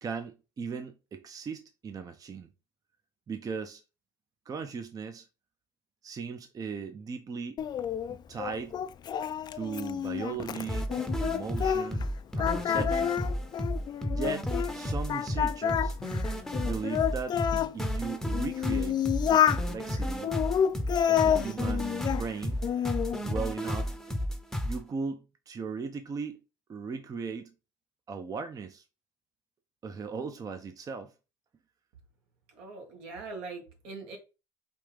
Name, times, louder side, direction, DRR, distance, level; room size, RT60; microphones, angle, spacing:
voice 1, 0.0-2.5 3.3-3.8 4.5-5.3 6.0-7.6 8.1-8.8 9.5-10.9 11.2-12.1 12.4-13.2 14.1-15.9 16.6-17.4 17.7-20.3 21.1-22.6 23.2-23.9 24.6-26.4 26.7-27.5 28.1-28.8 29.8-31.1, right 5 dB, 30° right, 0.6 m, -37 dB
Singing, 7.6-12.1 12.4-14.7 15.1-17.7 18.3-19.6 20.2-22.2 22.6-23.2, left 9 dB, 40° left, 0.4 m, -29 dB
sound 1, 10.7-24.8, equal, 5° left, 0.8 m, -32 dB
voice 2, 32.5-34.2, right 3 dB, 75° right, 1.7 m, -42 dB
5.1 x 2.8 x 3.4 m
supercardioid pair, 85°, 12 cm